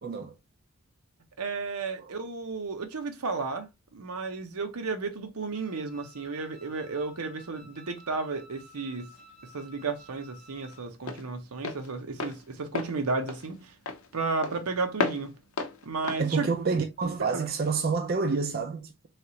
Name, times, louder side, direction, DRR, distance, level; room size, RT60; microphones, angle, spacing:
voice 1, 0.0-0.4 2.0-2.1 16.2-19.1, right 4 dB, 45° right, 0.4 m, -28 dB
voice 2, 1.4-9.1 9.4-13.7 14.1-15.3 15.8-16.5 17.3-17.5, right 4 dB, 85° right, 0.8 m, -33 dB
Wind instrument woodwind instrument, 5.5-10.9, left 1 dB, 30° left, 0.4 m, -54 dB
Walk footsteps, 8.8-17.5, left 4 dB, 75° left, 0.6 m, -36 dB
3.3 x 2.9 x 2.7 m
head